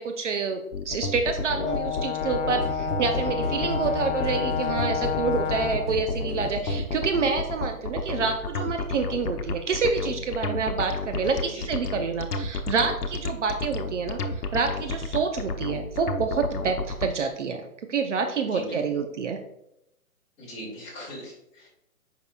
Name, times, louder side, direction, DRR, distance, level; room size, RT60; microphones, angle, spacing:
voice 1, 0.0-19.4, right 5 dB, 50° right, 5 dB, 0.7 m, -28 dB
sound 1, 0.7-17.1, left 3 dB, 85° left, 1.0 m, -31 dB
Brass instrument, 1.6-6.0, left 8 dB, 50° left, 0.8 m, -30 dB
sound 2, 2.6-7.2, equal, 30° right, 2.2 m, -35 dB
voice 2, 18.4-19.0 20.4-21.7, equal, 15° left, -5 dB, 2.2 m, -41 dB
7.6 x 5.5 x 2.3 m, 0.82 s
hypercardioid pair, 150°, 45 cm